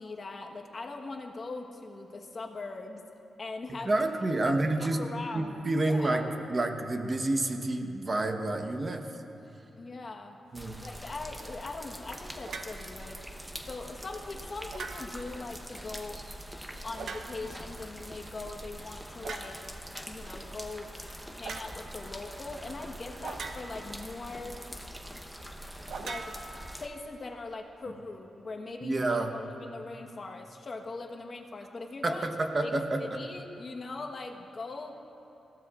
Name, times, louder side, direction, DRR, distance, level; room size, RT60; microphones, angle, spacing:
voice 1, 0.0-3.0 3.4-3.9 4.5-6.3 9.8-10.4 10.8-13.2 13.7-16.5 16.8-19.6 20.0-20.9 21.3-24.6 25.9-26.5 26.8-32.3 32.6-32.7 33.0-34.9, left 3 dB, 45° left, 2 dB, 1.2 m, -41 dB
voice 2, 3.8-5.0 5.3-9.1 10.5-10.8 28.8-29.3 32.0-33.0, right 2 dB, 35° right, 5 dB, 1.1 m, -29 dB
sound 1, 10.5-26.9, equal, 5° right, 1.0 m, -44 dB
sound 2, 12.5-12.8 14.7-15.3 16.9-17.6 19.2-19.6 21.4-21.7 23.2-24.0 25.9-27.0, right 4 dB, 75° right, 0.9 m, -41 dB
22.0 x 15.5 x 2.5 m, 3.0 s
cardioid pair, 90°, 0 cm